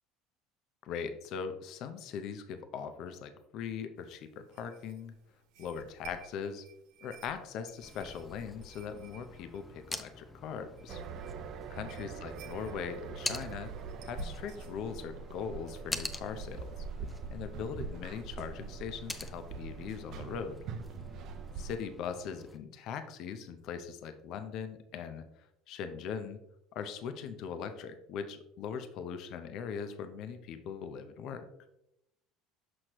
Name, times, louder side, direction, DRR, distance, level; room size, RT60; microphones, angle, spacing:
voice 1, 0.8-5.1 5.6-6.6 7.0-11.0 11.7-13.7 14.0-16.9 17.3-20.6 21.5-26.4 26.7-31.5, left 7 dB, 60° left, 9 dB, 0.6 m, -40 dB
sound 1, 4.0-14.7, right 3 dB, 75° right, 1.1 m, -52 dB
sound 2, 7.8-22.6, left 2 dB, 10° left, 0.6 m, -46 dB
sound 3, 10.9-21.8, right 5 dB, 55° right, 0.5 m, -43 dB
6.2 x 6.1 x 3.0 m, 0.83 s
supercardioid pair, 110°, 0 cm